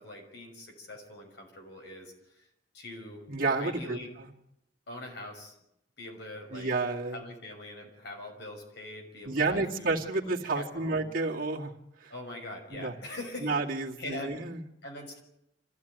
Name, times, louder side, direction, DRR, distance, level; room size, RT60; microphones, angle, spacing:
voice 1, 0.0-2.4 2.7-3.2 3.6-4.1 4.9-5.6 6.0-6.7 7.1-9.9 10.5-11.0 12.1-13.5 14.0-14.4 14.8-15.2, left 1 dB, 65° left, 2 dB, 5.9 m, -42 dB
voice 2, 3.3-4.3 6.5-7.2 9.3-11.7 12.0-12.1 12.7-12.9 13.4-14.6, right 3 dB, 50° right, -2 dB, 2.2 m, -30 dB
25.5 x 15.0 x 9.4 m, 0.82 s
head